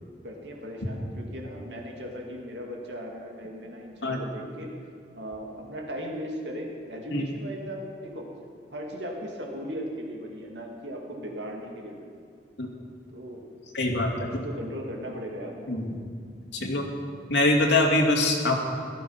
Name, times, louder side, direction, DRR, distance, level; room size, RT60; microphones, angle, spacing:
voice 1, 0.2-4.7 5.1-8.3 8.7-12.1 13.1-13.5 14.2-15.8, equal, 85° right, 1 dB, 2.4 m, -37 dB
voice 2, 13.7-14.3 15.7-16.0 16.5-16.9 17.3-18.6, left 2 dB, 85° left, -1 dB, 2.4 m, -23 dB
16.5 x 13.0 x 5.9 m, 2.3 s
head